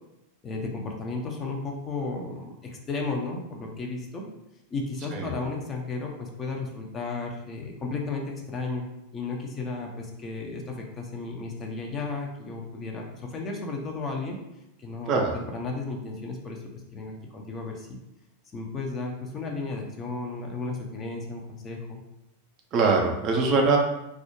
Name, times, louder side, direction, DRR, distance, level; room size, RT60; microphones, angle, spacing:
voice 1, 0.4-4.2 4.7-8.9 9.1-14.4 14.8-15.2 15.5-16.6 16.9-18.0 18.5-22.0, left 3 dB, 25° left, 0 dB, 0.4 m, -34 dB
voice 2, 22.7-23.8, right 4 dB, 35° right, 1 dB, 0.4 m, -22 dB
2.3 x 2.0 x 2.9 m, 0.89 s
figure-of-eight pair, 90°, 0 cm